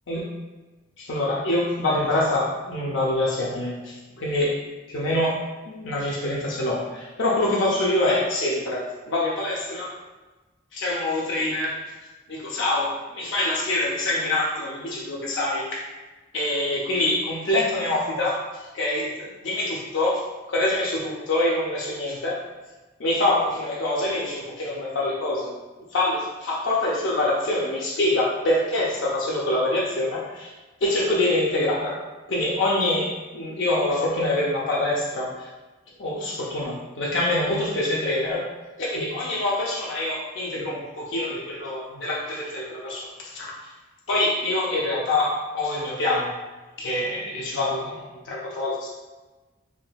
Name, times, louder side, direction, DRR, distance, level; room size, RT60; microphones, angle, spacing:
voice 1, 1.0-4.6 4.9-5.4 5.7-9.9 10.7-11.8 12.3-15.8 16.3-20.2 20.5-22.4 23.0-25.5 25.9-30.5 30.8-32.0 32.3-35.5 36.0-38.4 38.8-43.1 43.3-43.5 44.1-46.3 46.8-48.9, left 1 dB, 75° left, -5 dB, 0.6 m, -25 dB
3.7 x 2.6 x 2.2 m, 1.2 s
head